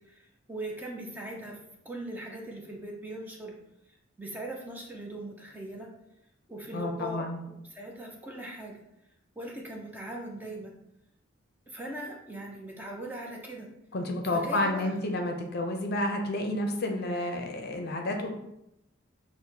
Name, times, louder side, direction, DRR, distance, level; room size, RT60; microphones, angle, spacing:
voice 1, 0.5-1.6 1.8-3.5 4.2-5.9 6.5-7.3 7.7-8.8 9.4-10.7 11.7-13.7 14.3-14.9, right 1 dB, 10° right, -1 dB, 0.5 m, -39 dB
voice 2, 6.7-7.4 13.9-18.3, left 1 dB, 50° left, 3 dB, 0.5 m, -30 dB
6.3 x 2.1 x 2.7 m, 0.83 s
head